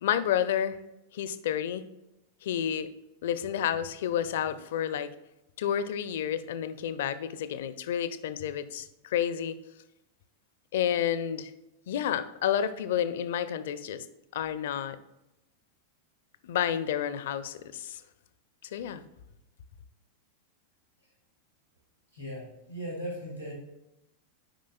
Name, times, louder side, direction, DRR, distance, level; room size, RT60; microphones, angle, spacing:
voice 1, 0.0-0.8 1.1-1.8 2.4-2.9 3.2-5.1 5.6-9.5 10.7-11.5 11.9-14.0 14.3-15.0 16.4-18.0 18.7-19.0, left 9 dB, 55° left, 13 dB, 0.4 m, -30 dB
voice 2, 22.1-23.5, equal, 90° right, -4 dB, 2.0 m, -38 dB
8.8 x 5.0 x 2.3 m, 0.92 s
figure-of-eight pair, 90°, 0 cm